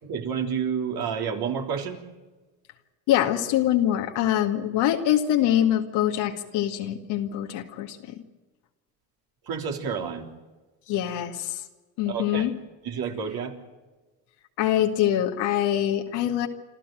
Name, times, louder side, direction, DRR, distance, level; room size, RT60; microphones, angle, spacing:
voice 1, 0.0-2.0 9.5-10.3 12.1-12.5 12.8-13.5, right 7 dB, 65° right, 3 dB, 3.6 m, -29 dB
voice 2, 3.1-8.0 10.9-11.5 12.0-12.5 14.6-16.5, left 11 dB, 80° left, 3 dB, 2.1 m, -24 dB
27.0 x 13.5 x 9.2 m, 1.2 s
supercardioid pair, 80°, 40 cm